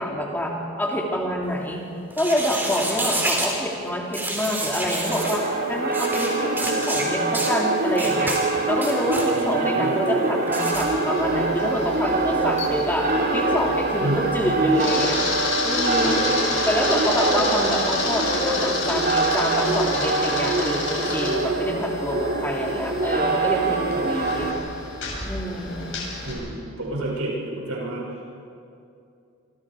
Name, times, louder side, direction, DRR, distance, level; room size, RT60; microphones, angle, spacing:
voice 1, 0.0-1.8 2.2-8.4 8.7-15.2 15.6-16.2 16.6-24.5 25.3-25.9, equal, 10° left, -1 dB, 3.0 m, -27 dB
sound 1, 2.1-3.5 4.1-5.4 5.9-6.3 6.6-7.0 7.3-7.5 8.0-8.4 8.7-9.3 10.5-10.8, right 1 dB, 10° right, 3.6 m, -28 dB
sound 2, 5.0-24.5, right 3 dB, 45° right, 3.3 m, -24 dB
voice 2, 9.4-10.0 14.0-14.2 16.1-16.7 26.2-28.0, right 2 dB, 85° right, -3 dB, 6.7 m, -30 dB
Camera, 10.7-26.3, left 3 dB, 55° left, 7.1 m, -30 dB
27.0 x 25.5 x 4.9 m, 2.6 s
head